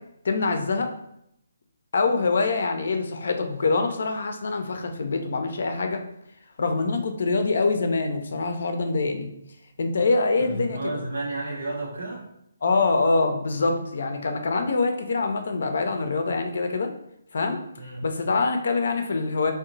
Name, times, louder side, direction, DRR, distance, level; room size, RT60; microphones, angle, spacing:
voice 1, 0.2-0.9 1.9-6.0 6.6-9.3 9.8-11.0 12.6-16.9 17.3-17.6 18.0-19.5, left 3 dB, 60° left, 6 dB, 0.5 m, -24 dB
voice 2, 10.4-12.2 17.8-18.0, right 2 dB, 65° right, -4 dB, 0.7 m, -32 dB
2.8 x 2.1 x 3.9 m, 0.77 s
figure-of-eight pair, 140°, 0 cm